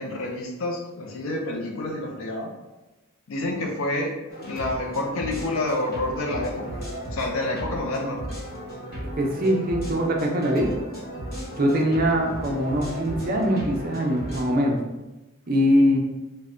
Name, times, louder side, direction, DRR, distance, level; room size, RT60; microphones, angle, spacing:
voice 1, 0.0-2.5 3.3-4.1 4.5-6.8 7.1-8.2, left 2 dB, 80° left, 1 dB, 0.5 m, -28 dB
sound 1, 4.3-14.4, equal, 45° left, 1.0 m, -35 dB
voice 2, 9.2-10.7 11.6-14.8 15.5-16.0, equal, 45° right, 0 dB, 0.6 m, -22 dB
3.3 x 2.1 x 3.7 m, 1.1 s
head